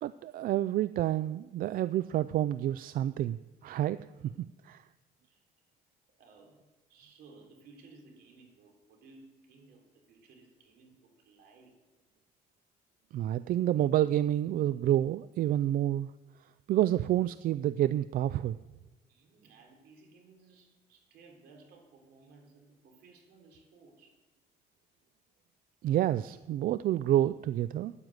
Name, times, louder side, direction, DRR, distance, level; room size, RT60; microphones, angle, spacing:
voice 1, 0.0-4.0 4.6-4.8 13.1-16.1 16.7-18.6 25.8-27.9, right 12 dB, 55° right, 15 dB, 0.4 m, -28 dB
voice 2, 6.2-6.6 6.9-11.7 19.1-24.2, right 3 dB, 75° right, 1 dB, 3.5 m, -58 dB
9.7 x 9.0 x 8.0 m, 1.2 s
cardioid pair, 110°, 17 cm